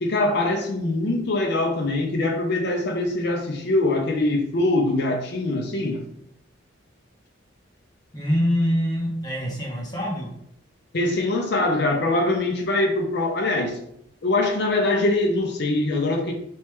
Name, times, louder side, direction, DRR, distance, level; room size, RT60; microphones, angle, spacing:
voice 1, 0.0-6.0 10.9-13.8 14.2-16.3, left 2 dB, 55° left, 2 dB, 0.6 m, -23 dB
voice 2, 8.1-10.3, equal, 20° left, -5 dB, 1.1 m, -24 dB
3.1 x 3.0 x 3.4 m, 0.74 s
head